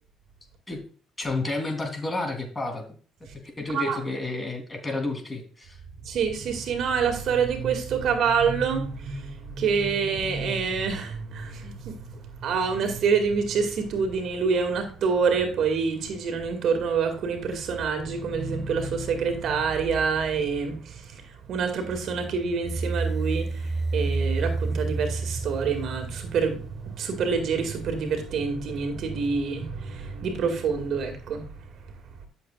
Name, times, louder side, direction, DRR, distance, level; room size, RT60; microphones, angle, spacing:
voice 1, 1.2-2.8 3.6-5.8, left 2 dB, 25° left, 3.4 m, -30 dB
voice 2, 6.0-31.5, right 5 dB, 65° right, 2.2 m, -27 dB
sound 1, 22.7-26.7, right 3 dB, 5° right, 1.4 m, -29 dB
13.0 x 7.2 x 2.4 m
supercardioid pair, 70°, 0 cm